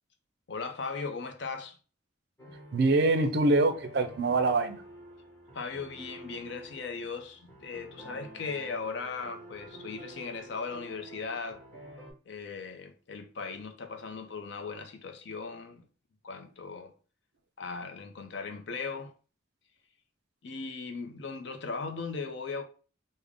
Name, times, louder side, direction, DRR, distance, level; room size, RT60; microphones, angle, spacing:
voice 1, 0.5-1.8 2.5-2.6 5.5-11.6 12.3-15.9 16.2-16.9 17.6-19.1 20.4-22.6, left 4 dB, 65° left, 0.5 m, -38 dB
sound 1, 2.4-12.1, right 1 dB, 15° left, 1.1 m, -49 dB
voice 2, 2.7-4.8, right 2 dB, 55° right, 0.4 m, -24 dB
3.5 x 2.1 x 3.5 m
head